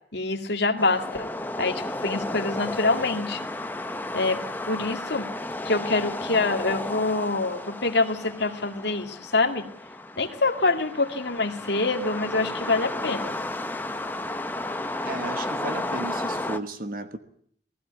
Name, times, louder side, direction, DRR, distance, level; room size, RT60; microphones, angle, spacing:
voice 1, 0.1-1.3 1.6-3.5 4.1-5.3 5.6-9.7 10.2-13.4, left 3 dB, 70° left, 5 dB, 2.2 m, -25 dB
sound 1, 0.8-16.6, left 2 dB, 10° left, 0.8 m, -33 dB
voice 2, 15.0-17.2, right 2 dB, 50° right, 9 dB, 1.3 m, -34 dB
19.5 x 16.0 x 9.6 m, 0.65 s
head